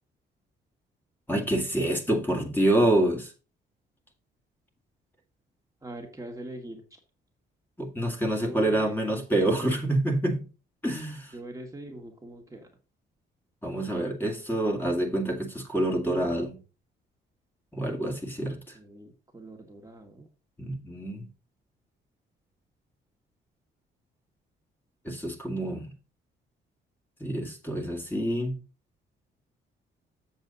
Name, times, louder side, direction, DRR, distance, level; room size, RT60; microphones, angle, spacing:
voice 1, 1.3-3.3 7.8-10.4 10.8-11.3 13.6-16.6 17.7-18.6 20.6-21.3 25.0-25.9 27.2-28.6, right 1 dB, 10° left, 2.1 m, -27 dB
voice 2, 5.8-6.8 8.4-9.8 11.3-12.7 18.4-20.3, right 2 dB, 15° right, 1.6 m, -43 dB
7.7 x 6.4 x 4.0 m
cardioid pair, 90°, 20 cm